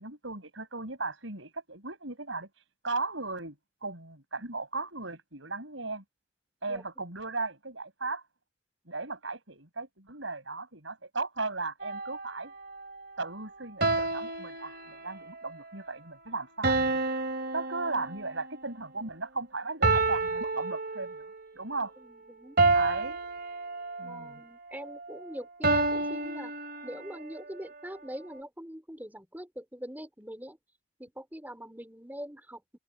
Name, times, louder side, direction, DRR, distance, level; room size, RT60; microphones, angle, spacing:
voice 1, 0.0-2.5 2.8-3.6 3.8-6.0 6.6-8.2 8.9-12.5 13.2-17.0 17.5-21.3 21.6-21.9 22.7-23.2 24.0-24.4, right 3 dB, 70° right, 6.7 m, -36 dB
sound 1, 11.8-12.3 13.8-15.3 16.6-18.5 19.8-21.4 22.6-24.2 25.6-27.2, right 3 dB, 50° right, 2.8 m, -29 dB
voice 2, 22.0-22.6 24.0-26.5 26.8-30.6 31.0-32.8, equal, 10° right, 3.9 m, -43 dB
head